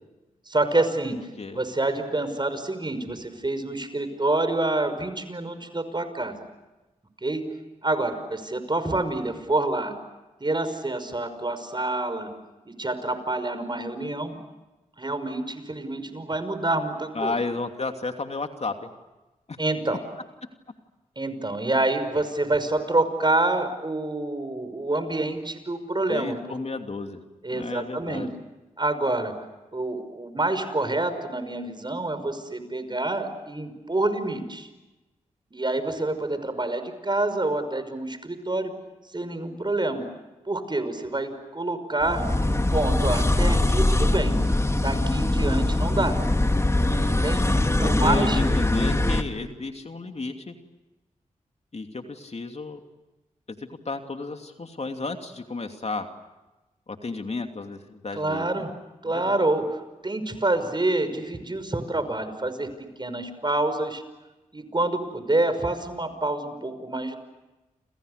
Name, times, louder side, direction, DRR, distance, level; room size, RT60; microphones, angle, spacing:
voice 1, 0.5-1.2 1.5-6.4 7.2-7.5 7.8-10.0 10.4-12.3 12.7-14.4 15.0-17.3 19.6-20.0 21.2-26.4 27.4-28.3 28.8-29.3 29.7-34.7 35.5-38.7 39.1-40.0 40.5-44.4 44.8-46.2 47.1-48.4 58.2-58.7 59.0-59.7 60.0-62.7 63.0-64.0 64.5-67.2, right 2 dB, 35° right, 10 dB, 5.7 m, -27 dB
voice 2, 17.1-18.9 19.5-19.6 26.1-27.2 27.5-28.3 47.8-50.5 51.7-52.8 53.5-56.1 56.9-58.5 59.1-59.4, left 3 dB, 50° left, 5 dB, 2.8 m, -32 dB
sound 1, 42.0-49.2, left 1 dB, 20° left, 2.7 m, -22 dB
29.5 x 27.5 x 6.7 m, 1.1 s
cardioid pair, 45°, 14 cm